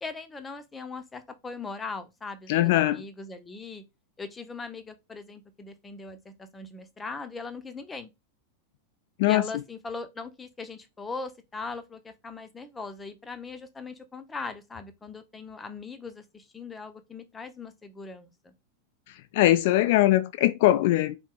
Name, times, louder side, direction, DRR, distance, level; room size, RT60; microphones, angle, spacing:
voice 1, 0.0-3.8 4.2-8.1 9.3-18.5, left 4 dB, 15° left, 0.8 m, -40 dB
voice 2, 2.5-3.0 9.2-9.4 19.3-21.2, left 15 dB, 50° left, 0.4 m, -21 dB
4.4 x 3.1 x 3.6 m
figure-of-eight pair, 90°, 0 cm